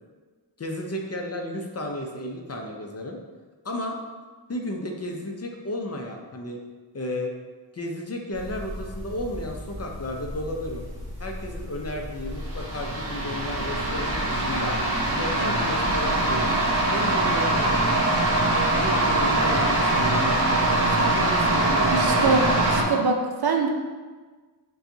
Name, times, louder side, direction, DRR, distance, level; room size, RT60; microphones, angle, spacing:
voice 1, 0.6-3.2 3.6-4.0 4.5-6.6 6.9-7.3 7.7-10.9 11.2-14.8 15.1-16.6 16.9-18.4 18.7-22.7, left 1 dB, 35° left, 1 dB, 0.6 m, -33 dB
sound 1, 8.3-22.8, right 2 dB, 30° right, 1.4 m, -24 dB
voice 2, 21.9-23.7, right 4 dB, 55° right, 2 dB, 0.6 m, -24 dB
6.7 x 2.4 x 2.7 m, 1.4 s
cardioid pair, 60°, 46 cm